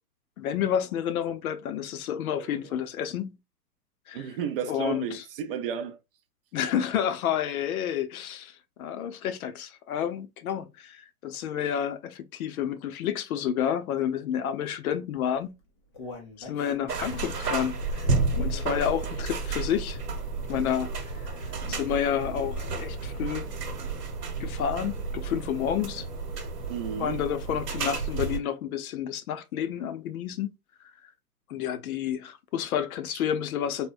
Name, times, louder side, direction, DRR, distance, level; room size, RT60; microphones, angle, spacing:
voice 1, 0.4-3.3 4.1-4.3 4.7-5.2 6.5-15.5 16.4-18.1 18.4-20.0 20.5-20.9 21.7-23.5 24.4-26.1 27.0-30.5 31.5-33.9, left 9 dB, 65° left, 0.6 m, -30 dB
voice 2, 4.1-6.0 26.7-27.2, right 7 dB, 40° right, 0.4 m, -32 dB
Human voice, 15.4-19.5 19.9-20.0 20.5-20.6, left 3 dB, 20° left, 0.3 m, -45 dB
sound 1, 16.9-28.4, right 3 dB, 80° right, 1.1 m, -31 dB
3.5 x 2.1 x 2.5 m
hypercardioid pair, 125°, 47 cm